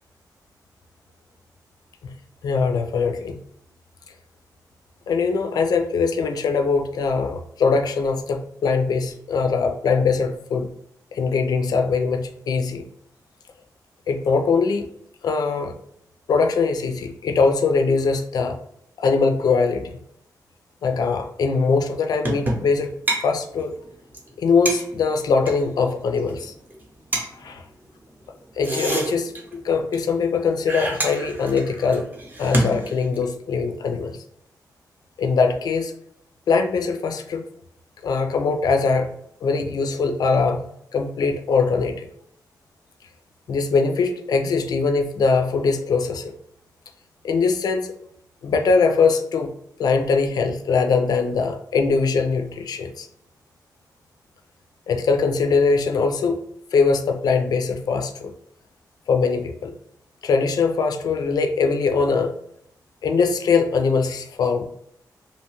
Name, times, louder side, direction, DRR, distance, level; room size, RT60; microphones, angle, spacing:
voice 1, 2.4-3.4 5.1-10.7 11.1-12.9 14.1-14.9 15.2-15.7 16.3-18.6 19.0-19.9 20.8-22.9 23.2-23.7 24.4-26.5 27.4-27.6 28.6-32.1 32.4-34.2 35.2-35.9 36.5-37.4 38.0-39.2 39.4-40.7 40.9-42.1 43.5-46.3 47.2-47.9 48.4-49.5 49.8-53.1 54.9-56.4 56.7-58.3 59.1-59.7 60.2-62.3 63.0-64.6, left 4 dB, 65° left, 5 dB, 0.3 m, -21 dB
sound 1, 22.2-22.8 23.1-23.2 23.5-23.6 23.9-24.0 24.1-24.3 24.7-25.6 26.2-26.4 26.7-26.8 27.1-27.3 28.4-29.7 29.9-30.0 30.2-30.4 30.7-33.3, right 1 dB, 25° right, 0.6 m, -27 dB
2.7 x 2.2 x 2.9 m, 0.72 s
wide cardioid pair, 125°, 7 cm